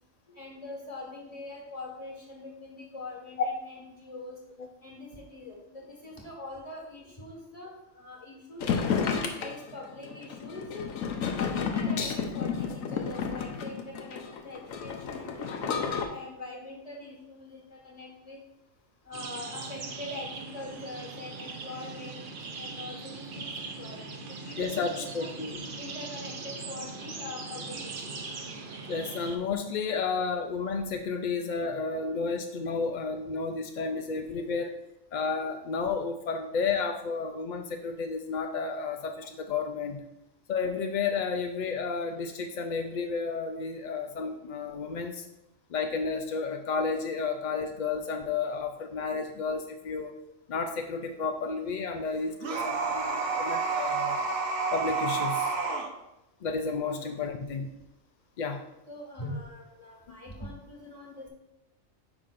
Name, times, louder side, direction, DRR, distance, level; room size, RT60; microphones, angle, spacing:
voice 1, 0.3-4.4 4.8-8.6 9.1-10.9 11.2-18.4 19.0-22.2 22.5-23.5 23.8-24.0 24.3-25.3 25.8-28.2 56.9-57.2 58.9-61.3, left 2 dB, 30° left, -1 dB, 1.6 m, -43 dB
sound 1, 8.6-16.1, left 6 dB, 85° left, 1.2 m, -31 dB
sound 2, 19.1-29.4, right 4 dB, 45° right, 0.8 m, -40 dB
voice 2, 24.6-25.6 28.9-34.8 35.1-40.0 40.5-45.2 45.7-50.2 50.5-54.2 54.7-55.5 56.4-57.8 58.4-58.6 60.1-60.2, left 5 dB, 65° left, 5 dB, 0.4 m, -32 dB
sound 3, 52.4-55.9, right 4 dB, 80° right, 1.5 m, -29 dB
9.3 x 5.5 x 2.5 m, 0.88 s
omnidirectional pair, 1.4 m